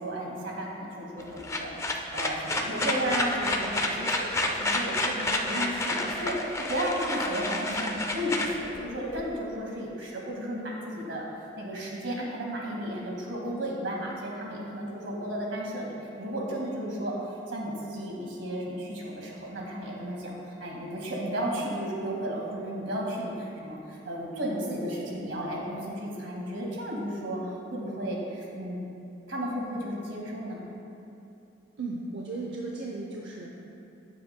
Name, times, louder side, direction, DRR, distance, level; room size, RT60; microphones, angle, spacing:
voice 1, 0.0-11.2 11.6-27.4 27.7-28.8 29.3-30.7, equal, 90° right, -2 dB, 1.9 m, -33 dB
sound 1, 1.2-9.2, left 2 dB, 15° left, 0.5 m, -30 dB
voice 2, 31.8-33.5, right 3 dB, 70° right, -1 dB, 0.7 m, -35 dB
15.0 x 7.5 x 2.2 m, 2.7 s
head